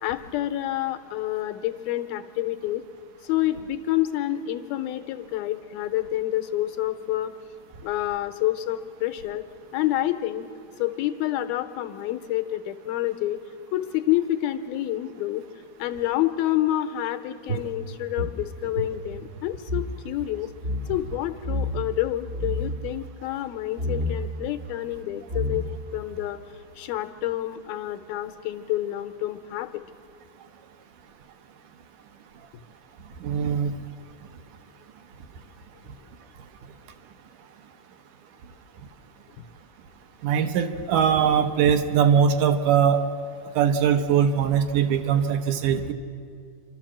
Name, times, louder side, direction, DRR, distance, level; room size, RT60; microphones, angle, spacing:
voice 1, 0.0-2.8 3.2-7.3 7.8-9.4 9.7-10.5 10.8-13.4 13.7-15.4 15.8-20.5 20.9-25.7 25.9-26.4 26.8-29.8, left 14 dB, 80° left, 9 dB, 2.5 m, -28 dB
sound 1, 17.5-19.9 20.2-20.3 20.6-20.8 21.4-21.9 22.3-22.8 23.8-24.2 24.9-25.0 25.3-25.9, left 1 dB, 50° right, 0.7 m, -29 dB
voice 2, 33.2-33.7 40.2-43.0 43.6-45.9, right 8 dB, 75° right, 8 dB, 2.0 m, -21 dB
28.5 x 12.5 x 7.3 m, 2.3 s
omnidirectional pair, 4.4 m